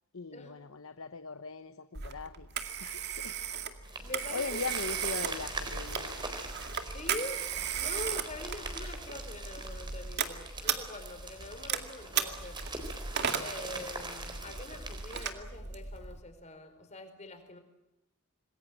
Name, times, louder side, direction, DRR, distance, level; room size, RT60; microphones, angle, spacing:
voice 1, 0.1-6.2, left 4 dB, 65° left, 11 dB, 1.0 m, -41 dB
Telephone, 2.0-16.2, right 7 dB, 50° right, 2.2 m, -36 dB
sound 1, 3.8-15.3, right 3 dB, 20° right, 4.0 m, -43 dB
voice 2, 4.0-4.6 6.9-7.4 7.7-12.7 13.4-17.6, left 1 dB, 30° left, 7 dB, 4.8 m, -44 dB
27.0 x 21.0 x 9.2 m, 0.90 s
head